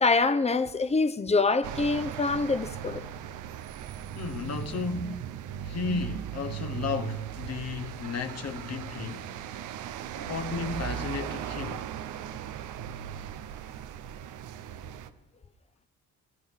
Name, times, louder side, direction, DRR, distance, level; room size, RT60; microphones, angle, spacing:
voice 1, 0.0-3.0, left 3 dB, 20° left, 0.8 m, -25 dB
sound 1, 1.6-15.1, right 10 dB, 90° right, 0.9 m, -38 dB
voice 2, 4.1-5.4 5.6-9.4 10.2-11.9, left 5 dB, 55° left, 1.2 m, -34 dB
23.5 x 14.5 x 3.7 m
cardioid pair, 90°, 30 cm